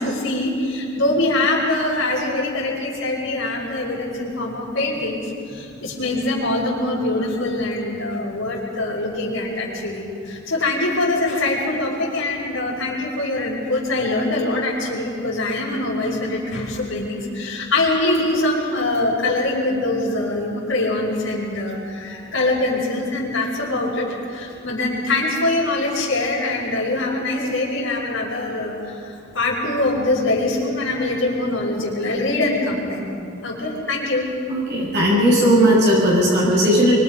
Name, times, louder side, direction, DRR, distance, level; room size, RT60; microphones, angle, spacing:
voice 1, 0.0-33.1 33.4-34.3, left 2 dB, 85° left, -9 dB, 5.5 m, -23 dB
voice 2, 34.5-37.0, equal, 60° right, -5 dB, 6.8 m, -16 dB
26.0 x 24.5 x 5.4 m, 2.5 s
head